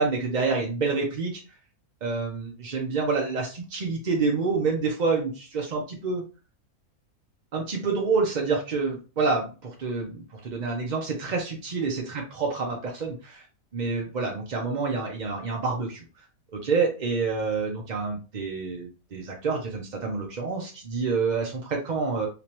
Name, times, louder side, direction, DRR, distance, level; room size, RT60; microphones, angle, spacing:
voice 1, 0.0-1.4 2.0-6.2 7.5-13.4 13.7-16.0 16.5-22.3, right 4 dB, 50° right, 0 dB, 0.5 m, -28 dB
3.4 x 2.9 x 2.9 m, 0.33 s
omnidirectional pair, 1.6 m